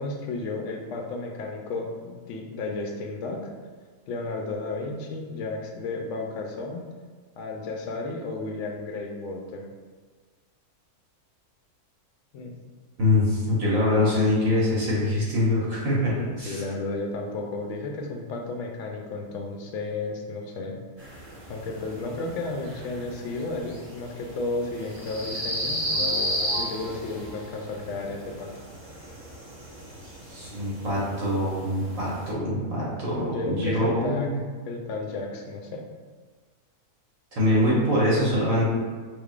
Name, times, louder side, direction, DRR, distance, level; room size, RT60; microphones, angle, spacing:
voice 1, 0.0-3.5 4.1-6.8 7.4-9.7 12.3-12.5 16.2-20.8 21.5-28.5 33.2-34.3 34.7-35.9, left 3 dB, 65° left, 2 dB, 0.8 m, -33 dB
voice 2, 13.0-16.1 16.4-16.6 30.3-34.3 37.3-38.6, left 1 dB, 65° right, -7 dB, 1.5 m, -24 dB
sound 1, 21.0-32.3, equal, 25° right, 0.7 m, -34 dB
sound 2, 25.9-29.2, left 1 dB, 85° left, 1.1 m, -43 dB
5.0 x 3.4 x 2.4 m, 1.5 s
omnidirectional pair, 1.6 m